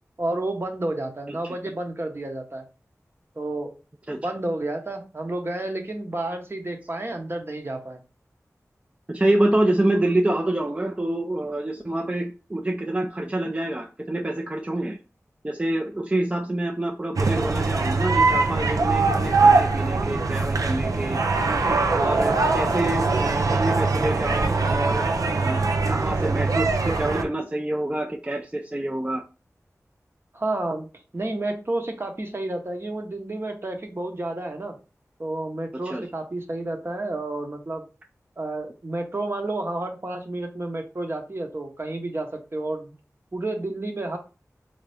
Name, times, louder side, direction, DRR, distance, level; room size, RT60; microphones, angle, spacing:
voice 1, 0.2-2.6 3.4-3.7 4.2-8.0 30.3-30.9 31.1-34.8 35.2-37.8 38.4-42.9 43.3-44.2, right 2 dB, 45° right, 4 dB, 0.9 m, -30 dB
voice 2, 9.1-15.0 15.4-21.2 21.9-25.0 25.4-25.6 25.9-29.2 35.8-36.0, right 1 dB, 20° right, 2 dB, 0.5 m, -26 dB
sound 1, 17.2-27.2, right 3 dB, 85° right, 0.5 m, -22 dB
3.6 x 2.7 x 3.4 m, 0.32 s
wide cardioid pair, 55°, 6 cm